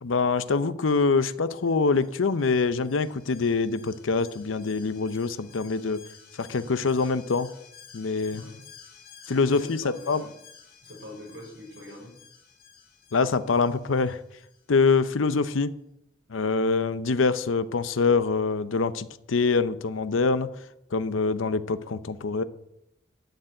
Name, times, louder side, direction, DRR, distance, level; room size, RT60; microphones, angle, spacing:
voice 1, 0.0-6.0 6.3-7.5 7.9-8.4 9.3-10.3 13.1-14.2 14.7-15.7 16.3-20.5 20.9-22.4, left 4 dB, 90° left, 14 dB, 0.6 m, -25 dB
Alarm, 1.5-15.0 15.3-15.4, left 6 dB, 55° left, 2.5 m, -53 dB
voice 2, 9.3-10.3 10.8-12.2, left 1 dB, 65° right, -1 dB, 5.2 m, -44 dB
11.5 x 6.8 x 8.9 m, 0.82 s
head